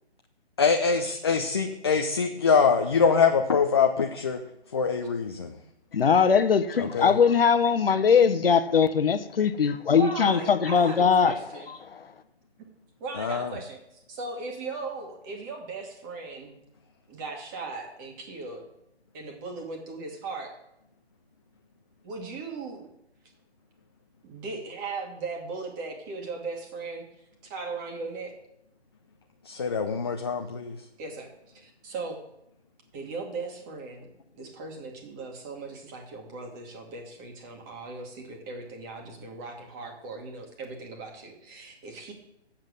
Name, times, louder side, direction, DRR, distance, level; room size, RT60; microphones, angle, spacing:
voice 1, 0.6-4.4 4.7-5.5 6.8-7.1 13.2-13.5 29.5-30.8, left 5 dB, 25° left, 0.5 m, -24 dB
voice 2, 5.9-11.3, left 6 dB, 60° left, 1.0 m, -21 dB
voice 3, 9.9-11.7 13.0-16.6 17.1-18.7 19.1-20.5 22.0-22.9 24.2-27.0 27.5-28.3 31.0-32.2 32.9-34.1 34.3-42.1, right 3 dB, 20° right, 1.5 m, -38 dB
7.6 x 7.3 x 6.4 m
figure-of-eight pair, 150°, 33 cm